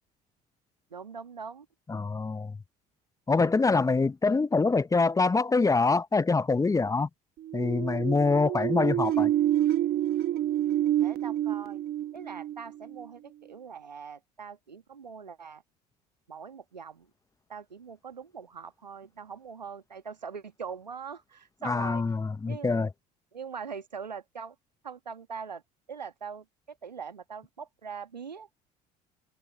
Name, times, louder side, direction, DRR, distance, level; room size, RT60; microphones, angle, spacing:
voice 1, 0.9-1.7 11.0-11.8 12.1-15.6 16.3-17.1 17.5-22.0 22.4-22.7 23.3-24.5 24.8-25.6 25.9-28.5, right 6 dB, 85° right, 1.5 m, -42 dB
voice 2, 1.9-2.5 3.3-7.1 7.5-9.3 21.6-22.9, left 4 dB, 15° left, 0.9 m, -25 dB
sound 1, 7.4-13.0, right 12 dB, 45° right, 1.3 m, -28 dB
figure-of-eight pair, 60°, 21 cm